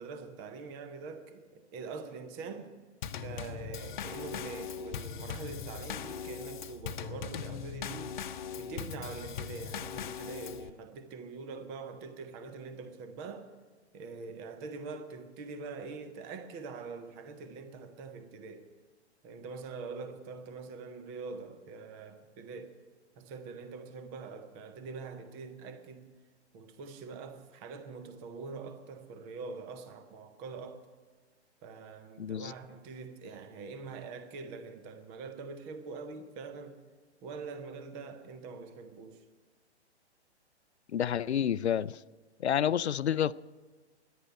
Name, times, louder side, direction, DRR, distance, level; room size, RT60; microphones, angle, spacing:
voice 1, 0.0-2.7 3.2-8.1 8.6-13.5 13.9-18.7 19.2-22.7 23.2-26.1 26.5-30.8 31.6-36.8 37.2-39.2, right 4 dB, 10° right, 0.3 m, -44 dB
Drum kit / Snare drum / Bass drum, 3.0-10.7, left 7 dB, 45° left, 0.8 m, -40 dB
voice 2, 32.2-32.5 40.9-42.0 42.4-43.3, left 9 dB, 70° left, 0.5 m, -29 dB
14.0 x 10.5 x 8.7 m
figure-of-eight pair, 120°, 34 cm